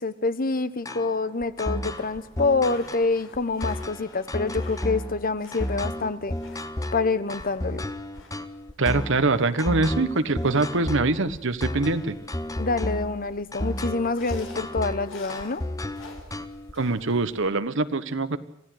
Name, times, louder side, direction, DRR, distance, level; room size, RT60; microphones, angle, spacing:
voice 1, 0.0-6.3 6.9-7.8 12.6-15.6, left 3 dB, 45° left, 14 dB, 1.2 m, -26 dB
sound 1, 0.8-16.7, left 1 dB, 15° left, 1.0 m, -32 dB
sound 2, 1.9-17.5, left 2 dB, 70° left, 4.7 m, -50 dB
voice 2, 8.8-12.1 16.7-18.4, right 3 dB, 65° right, 12 dB, 1.3 m, -24 dB
26.0 x 16.0 x 8.0 m, 0.79 s
head